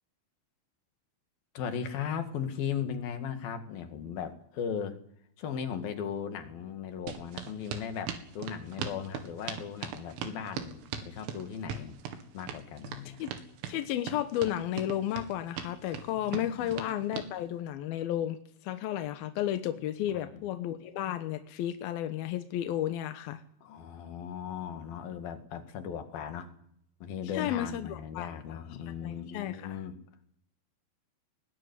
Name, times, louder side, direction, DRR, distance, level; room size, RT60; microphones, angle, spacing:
voice 1, 1.5-5.0 5.4-11.9 12.3-13.3 16.2-16.8 20.0-20.4 23.6-26.5 27.0-29.9, left 8 dB, 55° left, 7 dB, 3.4 m, -37 dB
sound 1, 7.1-17.3, right 8 dB, 80° right, 4.6 m, -39 dB
voice 2, 13.7-18.4 18.6-23.4 27.3-28.6 29.0-29.8, left 12 dB, 75° left, 9 dB, 2.3 m, -33 dB
21.5 x 19.0 x 9.7 m, 0.69 s
omnidirectional pair, 5.7 m